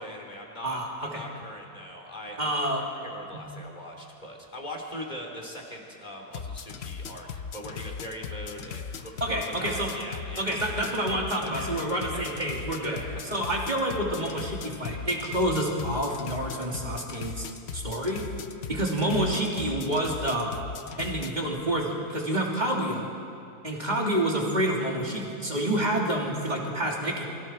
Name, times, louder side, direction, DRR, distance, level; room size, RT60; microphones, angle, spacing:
voice 1, 0.0-2.7 3.0-10.7 11.4-12.2 12.8-13.2, equal, 25° left, 0 dB, 3.1 m, -41 dB
voice 2, 0.6-1.2 2.4-2.8 3.3-3.4 9.2-9.9 10.4-13.0 13.2-17.4 17.7-18.2 18.7-20.6 21.0-23.1 23.6-27.2, right 1 dB, 25° right, -2 dB, 3.0 m, -28 dB
sound 1, 6.3-21.3, left 6 dB, 50° left, 0.8 m, -38 dB
28.0 x 23.5 x 4.5 m, 2.5 s
omnidirectional pair, 1.8 m